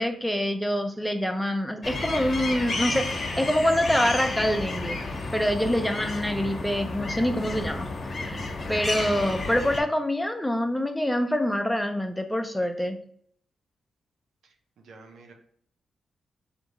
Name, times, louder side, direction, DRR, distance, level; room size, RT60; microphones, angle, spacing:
voice 1, 0.0-5.0 5.3-8.4 8.7-13.0, equal, 5° left, 6 dB, 0.6 m, -26 dB
sound 1, 1.8-9.8, left 2 dB, 50° left, 0.8 m, -31 dB
voice 2, 14.4-15.3, right 3 dB, 80° right, 3 dB, 0.7 m, -51 dB
3.4 x 2.8 x 4.0 m, 0.63 s
supercardioid pair, 50°, 0 cm